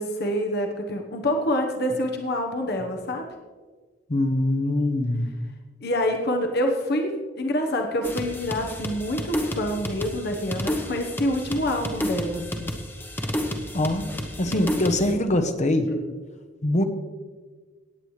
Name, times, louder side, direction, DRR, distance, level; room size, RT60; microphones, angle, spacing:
voice 1, 0.0-3.2 5.8-12.7 15.9-16.0, equal, 60° left, 3 dB, 1.1 m, -26 dB
voice 2, 4.1-5.3 13.7-14.1 14.4-15.9 16.6-16.8, left 1 dB, 40° left, 7 dB, 0.9 m, -23 dB
sound 1, 8.0-15.1, left 1 dB, 10° left, 0.9 m, -31 dB
17.5 x 8.8 x 3.2 m, 1.5 s
head